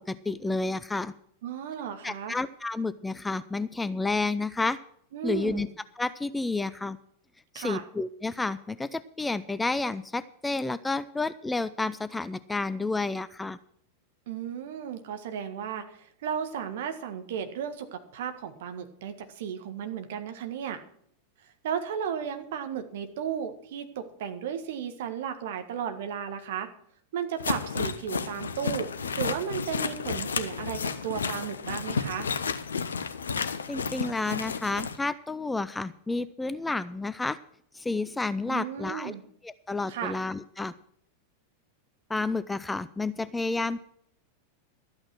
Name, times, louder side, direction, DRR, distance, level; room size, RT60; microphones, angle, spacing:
voice 1, 0.1-1.1 2.0-4.8 5.2-5.7 6.0-7.0 7.5-13.6 33.7-37.4 37.7-39.1 39.4-40.7 42.1-43.9, left 3 dB, 10° left, 15 dB, 0.5 m, -30 dB
voice 2, 1.4-2.4 5.1-5.7 7.5-7.8 14.3-20.8 21.6-26.7 27.1-28.9 29.2-32.3 38.5-39.2 39.9-40.2, right 8 dB, 55° right, 7 dB, 1.7 m, -34 dB
sound 1, 27.4-35.0, left 5 dB, 70° left, 0.8 m, -32 dB
13.0 x 8.8 x 6.1 m, 0.66 s
figure-of-eight pair, 90°, 0 cm